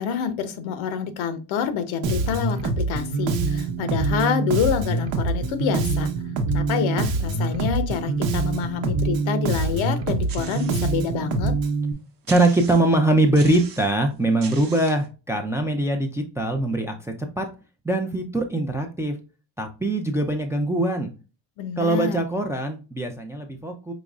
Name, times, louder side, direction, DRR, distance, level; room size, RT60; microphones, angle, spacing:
voice 1, 0.0-6.1 6.5-11.5 21.6-22.2, left 7 dB, 75° left, 10 dB, 0.8 m, -27 dB
Bass guitar, 2.0-11.9, right 3 dB, 75° right, 0.9 m, -25 dB
sound 1, 10.3-11.0 11.5-11.6 12.3-13.0 13.4-14.0 14.4-15.1, right 7 dB, 45° right, 0.8 m, -40 dB
voice 2, 12.3-17.5 17.8-19.2 19.6-21.1 21.8-23.9, right 2 dB, 5° right, 4 dB, 0.3 m, -22 dB
5.1 x 3.0 x 2.4 m, 0.32 s
cardioid pair, 120°, 47 cm